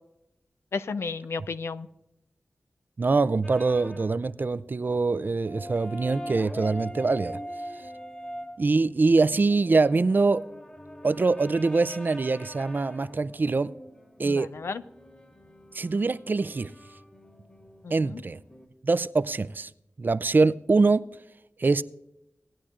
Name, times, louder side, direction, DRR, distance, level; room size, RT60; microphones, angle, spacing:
voice 1, 0.7-1.9 14.2-14.8 17.8-18.2, left 4 dB, 85° left, 0.4 m, -33 dB
voice 2, 3.0-7.4 8.6-10.4 11.0-13.7 14.2-14.5 15.7-16.7 17.9-18.4 18.8-19.7 20.0-21.0 21.6-21.8, right 3 dB, 50° right, 0.4 m, -24 dB
sound 1, 3.4-4.2 4.5-4.7 4.9-8.5 9.3-18.7, equal, 25° left, 1.8 m, -43 dB
18.0 x 10.0 x 2.5 m
cardioid pair, 50°, 4 cm